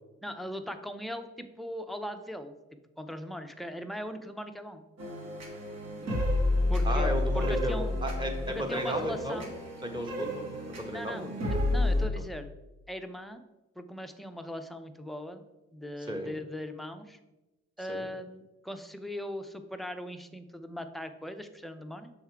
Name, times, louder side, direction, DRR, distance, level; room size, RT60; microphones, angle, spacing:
voice 1, 0.2-2.5 3.0-4.8 6.7-7.9 8.5-9.5 10.9-12.5 12.9-13.4 13.8-15.4 15.7-17.2 17.8-22.1, equal, ahead, 7 dB, 0.5 m, -39 dB
sound 1, 5.0-12.0, left 1 dB, 60° right, 1.6 m, -30 dB
voice 2, 6.8-9.4 9.9-10.4 10.9-11.3 16.1-16.3 17.8-18.1, equal, 15° right, 3 dB, 1.1 m, -34 dB
6.4 x 3.5 x 4.5 m, 1.0 s
cardioid pair, 90°, 30 cm